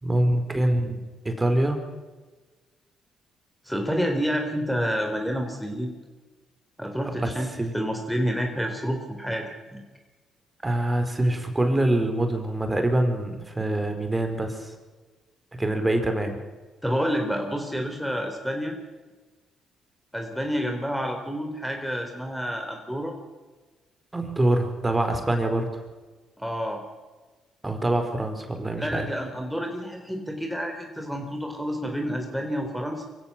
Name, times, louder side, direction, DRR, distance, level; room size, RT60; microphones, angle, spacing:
voice 1, 0.0-1.8 7.2-7.3 7.6-7.7 10.6-14.7 15.6-16.3 24.1-25.7 27.6-29.1, right 1 dB, 20° right, 6 dB, 4.6 m, -25 dB
voice 2, 3.6-5.9 6.8-9.8 16.8-18.8 20.1-23.1 26.4-26.8 28.8-33.0, equal, ahead, 3 dB, 3.9 m, -29 dB
24.5 x 16.0 x 7.5 m, 1.3 s
hypercardioid pair, 50°, 0 cm